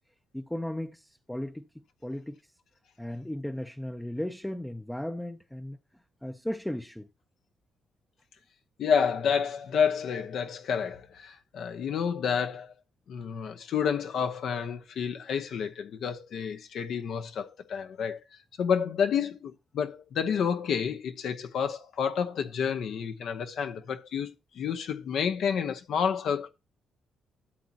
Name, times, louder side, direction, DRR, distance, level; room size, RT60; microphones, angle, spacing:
voice 1, 0.3-2.5 3.0-5.8 6.2-7.1, left 1 dB, 5° left, 0.6 m, -36 dB
voice 2, 8.8-12.7 13.1-18.2 18.6-26.5, left 7 dB, 70° left, 0.9 m, -29 dB
12.5 x 7.1 x 2.8 m
cardioid pair, 105°, 0 cm